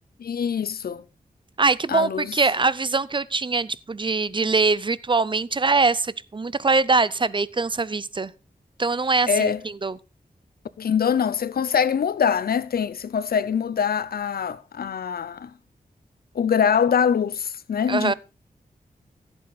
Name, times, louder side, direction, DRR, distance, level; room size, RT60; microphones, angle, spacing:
voice 1, 0.2-1.0 1.9-2.3 9.3-9.6 10.8-15.5 16.3-18.1, left 7 dB, 90° left, 0.7 m, -23 dB
voice 2, 1.6-8.3 8.8-10.0 17.9-18.1, right 4 dB, 35° right, 0.6 m, -23 dB
15.5 x 8.1 x 4.3 m
wide cardioid pair, 80°, 15 cm